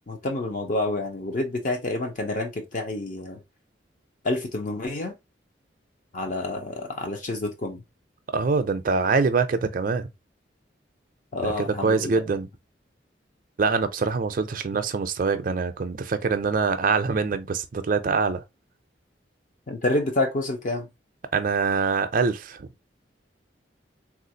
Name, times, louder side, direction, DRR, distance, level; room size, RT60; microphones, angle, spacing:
voice 1, 0.1-3.4 4.2-5.1 6.1-7.8 11.3-12.1 19.7-20.9, left 2 dB, 45° left, 0.6 m, -28 dB
voice 2, 8.3-10.1 11.4-12.5 13.6-18.4 21.3-22.7, right 4 dB, 50° right, 0.4 m, -24 dB
3.5 x 2.5 x 2.6 m
head